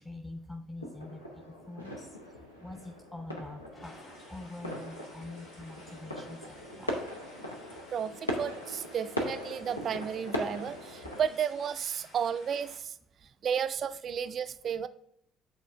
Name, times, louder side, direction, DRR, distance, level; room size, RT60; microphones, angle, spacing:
voice 1, 0.0-7.0 7.7-7.8, left 2 dB, 10° left, 3 dB, 0.7 m, -45 dB
sound 1, 0.8-11.3, equal, 85° left, 0.6 m, -40 dB
Gunshot gunfire, 3.7-4.9, left 2 dB, 40° left, 2.1 m, -56 dB
sound 2, 3.8-12.8, left 1 dB, 70° left, 1.1 m, -55 dB
voice 2, 7.9-12.9 13.4-14.9, right 8 dB, 45° right, 12 dB, 0.4 m, -33 dB
8.3 x 3.6 x 3.3 m, 0.71 s
figure-of-eight pair, 45°, 0 cm